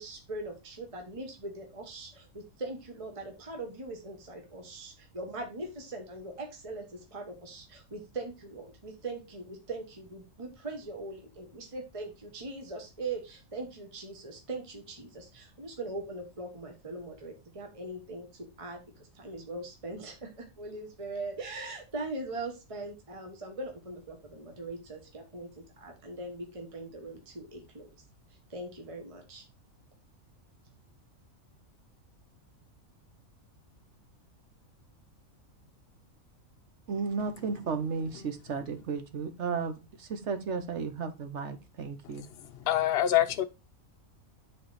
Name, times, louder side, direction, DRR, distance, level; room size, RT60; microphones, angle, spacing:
voice 1, 0.0-6.8 7.1-18.3 18.6-18.8 19.2-20.3 20.6-25.5 25.8-27.9 28.5-29.4, right 2 dB, 25° right, 1.3 m, -41 dB
voice 2, 36.9-42.3, right 5 dB, 60° right, 1.3 m, -34 dB
voice 3, 42.6-43.4, left 12 dB, 55° left, 0.9 m, -25 dB
9.4 x 4.2 x 4.1 m
omnidirectional pair, 1.4 m